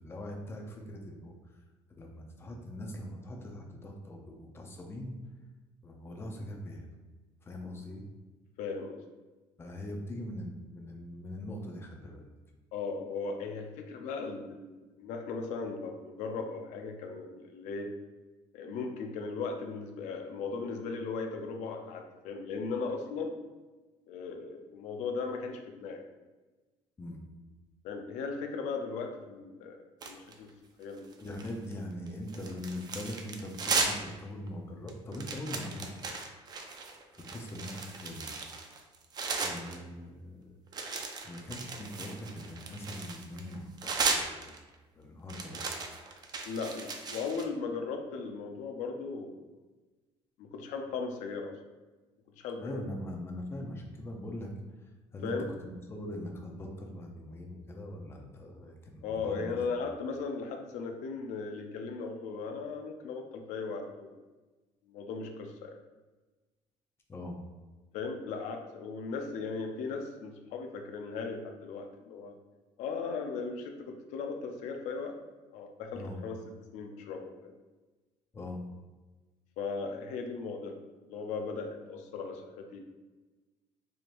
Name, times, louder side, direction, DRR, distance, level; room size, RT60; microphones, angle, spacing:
voice 1, 0.0-1.6 1.9-5.1 5.8-6.9 7.4-8.0 9.6-12.3 27.0-27.2 31.2-35.9 37.1-38.4 39.4-40.5 41.2-44.6 44.9-45.8 52.6-54.5 55.1-55.4 55.6-59.6 67.1-67.4 75.9-76.2 78.3-78.6, left 1 dB, 20° left, 1 dB, 0.6 m, -41 dB
voice 2, 8.6-9.0 12.7-17.9 18.5-23.4 24.1-26.0 27.8-29.8 30.0-30.5 30.8-31.1 46.5-49.5 50.4-51.6 52.4-52.8 55.2-55.5 59.0-64.2 64.9-65.8 67.9-72.4 72.8-75.2 75.5-76.4 76.7-77.5 79.6-82.8, left 4 dB, 85° left, 4 dB, 0.5 m, -37 dB
sound 1, 30.0-30.5 31.0-31.7 32.1-34.1 34.5-34.6 34.9-39.8 40.7-44.7 45.3-47.4, right 4 dB, 35° right, 0.5 m, -36 dB
4.8 x 2.9 x 2.5 m, 1.2 s
cardioid pair, 140°, 12 cm